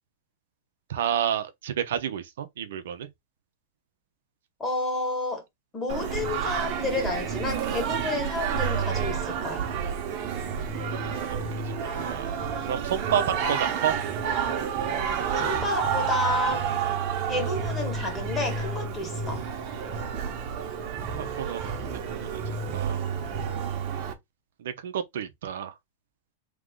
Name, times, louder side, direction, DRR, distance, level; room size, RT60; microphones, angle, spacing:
voice 1, 0.9-3.1 10.9-14.0 21.1-21.6 22.1-23.1 24.6-25.7, right 9 dB, 75° right, 0.8 m, -31 dB
voice 2, 4.6-5.4 5.7-9.7 15.4-16.6 17.3-19.4, left 2 dB, 15° left, 1.7 m, -30 dB
Singing, 5.9-24.1, right 6 dB, 45° right, 1.2 m, -30 dB
3.7 x 3.1 x 3.7 m
supercardioid pair, 145°, 0 cm